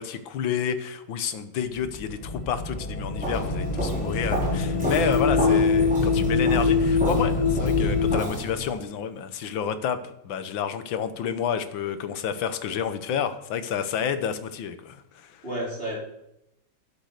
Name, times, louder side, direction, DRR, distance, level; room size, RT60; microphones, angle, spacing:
voice 1, 0.0-15.4, left 8 dB, 75° left, 10 dB, 1.8 m, -30 dB
sound 1, 1.8-8.2, left 4 dB, 50° left, 0.4 m, -24 dB
Walk footsteps, 3.2-8.8, equal, 5° right, 4.7 m, -32 dB
voice 2, 5.0-5.4 15.4-16.0, right 1 dB, 25° right, -4 dB, 4.6 m, -32 dB
12.0 x 8.1 x 6.6 m, 0.81 s
omnidirectional pair, 2.2 m